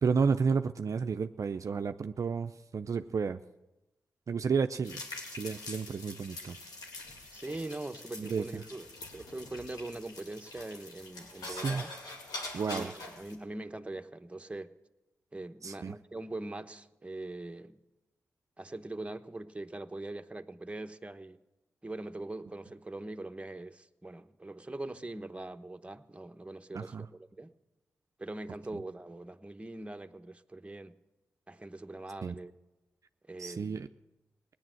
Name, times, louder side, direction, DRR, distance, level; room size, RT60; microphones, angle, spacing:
voice 1, 0.0-3.4 4.3-5.0 5.3-6.6 8.2-8.6 11.5-11.8 12.5-12.9 15.6-16.0 26.7-27.1 32.2-32.4 33.4-33.9, right 5 dB, 60° right, 0.5 m, -31 dB
sound 1, 4.8-13.3, left 2 dB, 85° left, 2.3 m, -44 dB
voice 2, 7.3-11.9 12.7-14.7 15.3-17.8 18.6-21.4 21.8-27.5 28.2-31.0 31.5-32.5 33.3-33.8, right 2 dB, 20° right, 1.0 m, -42 dB
18.0 x 10.0 x 7.6 m
supercardioid pair, 40°, 6 cm